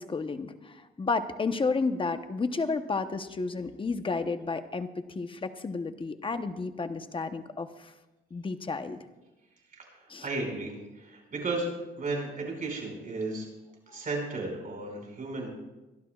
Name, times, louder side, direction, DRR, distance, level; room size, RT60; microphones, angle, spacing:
voice 1, 0.0-7.9 8.3-9.0 10.1-10.3, left 4 dB, 25° left, 9 dB, 0.9 m, -32 dB
voice 2, 9.9-11.7 12.0-13.5 13.9-15.5, right 3 dB, 45° right, 0 dB, 5.6 m, -34 dB
24.0 x 12.0 x 2.4 m, 1.1 s
cardioid pair, 90°, 20 cm